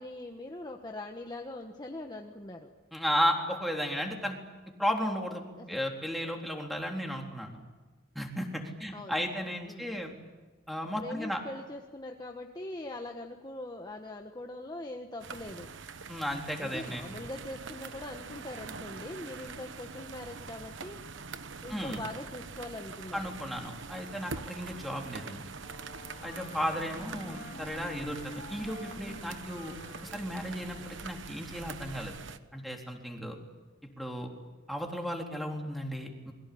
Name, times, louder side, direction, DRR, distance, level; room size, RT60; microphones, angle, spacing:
voice 1, 0.0-2.7 5.6-5.8 8.9-9.2 9.7-9.9 11.0-15.7 16.6-21.0 21.6-23.2 27.2-27.4, left 2 dB, 20° left, 3 dB, 1.4 m, -42 dB
voice 2, 2.9-4.4 4.8-7.6 8.2-10.1 10.7-11.4 16.1-17.0 21.7-22.0 23.1-25.5 26.2-29.8 30.1-32.2 32.5-33.4 34.0-34.3 34.7-36.3, equal, ahead, 1 dB, 3.7 m, -34 dB
sound 1, 15.2-32.4, right 4 dB, 65° right, 1.2 m, -44 dB
Wind instrument woodwind instrument, 25.6-31.3, left 2 dB, 40° left, 2.3 m, -47 dB
28.0 x 22.0 x 8.7 m, 1.3 s
head